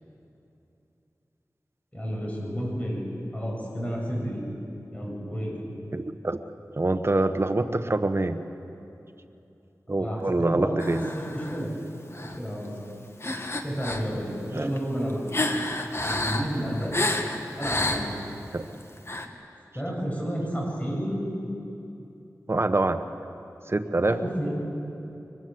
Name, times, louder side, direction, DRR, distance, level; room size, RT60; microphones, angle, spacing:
voice 1, 1.9-3.0 3.3-4.4 4.9-5.5 9.9-10.8 11.1-11.7 12.2-12.7 13.6-15.2 16.1-17.0 17.6-18.0 19.7-21.3 24.0-24.5, equal, 20° left, -2 dB, 7.7 m, -31 dB
voice 2, 5.9-6.4 6.8-8.4 9.9-11.0 14.5-14.7 18.5-18.6 22.5-23.1 23.7-24.2, right 2 dB, 40° right, 8 dB, 1.2 m, -25 dB
sound 1, 10.8-11.7 12.1-12.4 13.2-14.1 14.6-18.3 19.0-19.3, left 1 dB, 45° left, 1.7 m, -30 dB
23.5 x 20.0 x 7.9 m, 2.8 s
wide cardioid pair, 55°, 6 cm